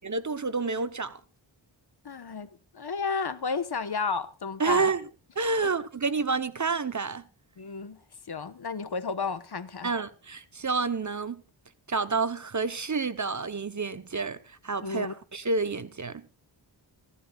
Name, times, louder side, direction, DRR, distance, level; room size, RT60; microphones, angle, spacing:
voice 1, 0.0-1.2 4.6-5.1 5.4-7.2 9.8-11.4 11.9-16.2, right 4 dB, 40° right, 0.9 m, -29 dB
voice 2, 2.0-4.9 7.6-8.0 8.3-9.9 14.8-15.1, left 5 dB, 55° left, 1.2 m, -32 dB
29.0 x 11.0 x 2.4 m
wide cardioid pair, 90°, 46 cm